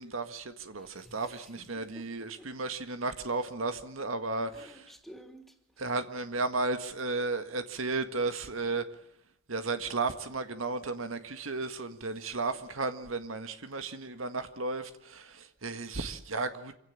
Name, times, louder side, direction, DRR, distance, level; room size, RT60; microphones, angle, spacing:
voice 1, 0.0-4.8 5.8-8.9 9.5-16.7, right 3 dB, 90° right, 1.9 m, -34 dB
voice 2, 0.8-2.5 3.8-3.9 4.4-5.9, equal, ahead, 3.2 m, -54 dB
26.5 x 17.0 x 8.8 m
head